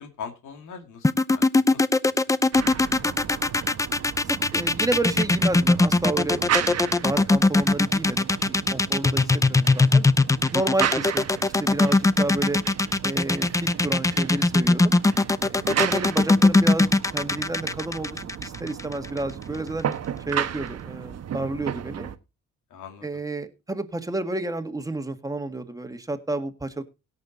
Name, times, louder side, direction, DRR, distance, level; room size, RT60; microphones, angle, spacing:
voice 1, 0.0-3.3 9.1-9.3 15.8-16.1 22.7-23.2, left 6 dB, 80° left, 5 dB, 2.5 m, -43 dB
sound 1, 1.0-19.2, left 2 dB, 10° left, 0.5 m, -20 dB
sound 2, 2.5-22.2, right 9 dB, 55° right, 1.2 m, -34 dB
voice 2, 4.2-10.1 10.5-12.6 13.0-15.0 15.4-19.9 20.3-22.1 23.0-26.8, right 2 dB, 10° right, 7 dB, 1.8 m, -31 dB
17.0 x 6.8 x 4.0 m, 0.28 s
cardioid pair, 90°, 30 cm